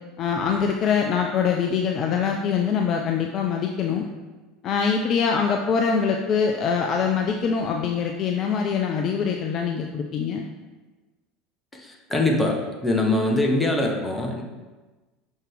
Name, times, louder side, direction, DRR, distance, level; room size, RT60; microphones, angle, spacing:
voice 1, 0.2-4.1 4.6-10.4, left 6 dB, 40° left, 2 dB, 0.5 m, -24 dB
voice 2, 11.7-14.4, left 2 dB, 15° left, 0 dB, 1.2 m, -23 dB
5.7 x 5.4 x 3.6 m, 1.2 s
figure-of-eight pair, 70°, 0 cm